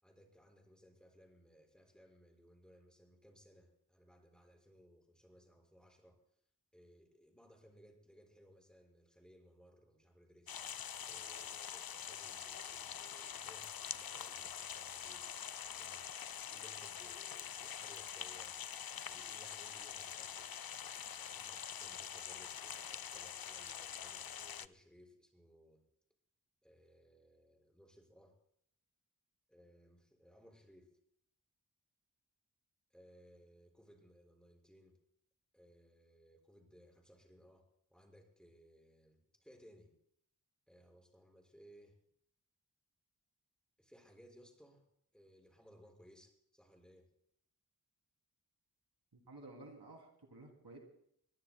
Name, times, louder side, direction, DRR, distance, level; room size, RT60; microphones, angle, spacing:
voice 1, 0.0-6.2 6.7-10.5 11.0-15.3 15.6-16.1 16.5-18.6 19.1-20.5 21.1-25.8 26.6-28.4 29.5-30.9 32.9-35.0 35.5-39.9 40.7-42.0 43.8-44.9 45.1-47.1, equal, ahead, 1 dB, 5.3 m, -63 dB
sound 1, 10.5-24.7, left 8 dB, 65° left, 0.5 m, -45 dB
voice 2, 49.1-50.8, right 2 dB, 80° right, 1 dB, 2.9 m, -54 dB
23.0 x 21.5 x 2.2 m, 0.71 s
wide cardioid pair, 45°, 39 cm